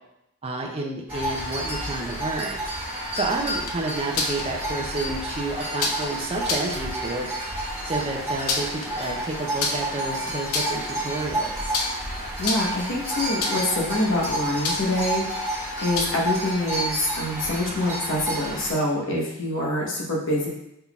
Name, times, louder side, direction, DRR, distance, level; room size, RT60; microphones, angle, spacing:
voice 1, 0.4-2.6 3.1-7.3 7.8-11.8, right 2 dB, 25° right, 0 dB, 0.4 m, -30 dB
sound 1, 1.1-18.7, right 1 dB, 10° right, 1.6 m, -30 dB
sound 2, 3.5-4.4 5.8-6.1 6.4-6.7 8.2-8.9 9.6-10.0 10.4-10.9 11.7-12.0 12.4-12.8 13.4-13.8 14.6-15.0 15.9-16.3, left 3 dB, 85° left, 0.6 m, -28 dB
voice 2, 12.4-15.2 15.8-20.5, left 1 dB, 60° left, -2 dB, 1.1 m, -25 dB
5.4 x 3.8 x 2.4 m, 0.82 s
head